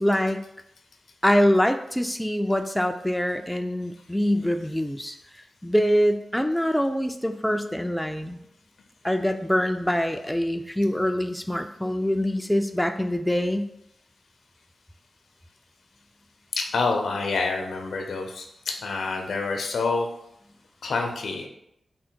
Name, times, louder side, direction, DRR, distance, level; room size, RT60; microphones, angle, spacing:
voice 1, 0.0-0.4 1.2-5.2 5.6-8.4 9.0-13.7, equal, 5° left, 6 dB, 0.3 m, -24 dB
voice 2, 16.5-20.1 20.8-21.5, left 4 dB, 85° left, 3 dB, 0.6 m, -27 dB
3.7 x 2.1 x 4.4 m, 0.77 s
cardioid pair, 60°, 0 cm